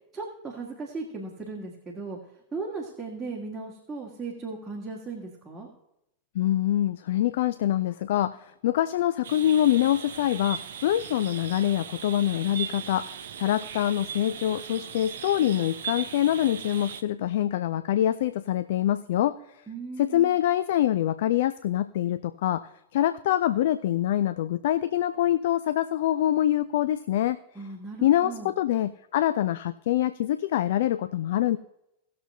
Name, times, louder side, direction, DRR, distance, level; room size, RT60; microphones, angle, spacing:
voice 1, 0.1-2.2 2.5-5.7 19.7-20.3 27.5-28.5, right 4 dB, 10° right, -4 dB, 1.7 m, -37 dB
voice 2, 6.3-8.4 8.6-19.4 20.0-27.4 28.0-31.6, left 12 dB, 55° left, 14 dB, 0.3 m, -25 dB
sound 1, 9.2-17.0, right 8 dB, 60° right, 0.6 m, -38 dB
18.5 x 6.7 x 2.7 m, 0.82 s
figure-of-eight pair, 90°, 0 cm